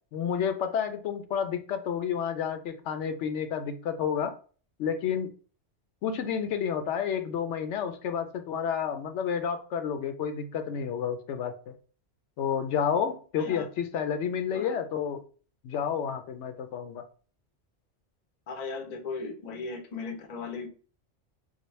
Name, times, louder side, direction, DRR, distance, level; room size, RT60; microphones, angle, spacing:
voice 1, 0.1-4.3 4.8-5.3 6.0-11.7 12.4-15.2 15.6-17.0, left 7 dB, 80° left, 8 dB, 0.9 m, -30 dB
voice 2, 18.5-20.7, left 4 dB, 50° left, 6 dB, 0.5 m, -37 dB
4.0 x 2.1 x 3.1 m, 0.39 s
omnidirectional pair, 1.2 m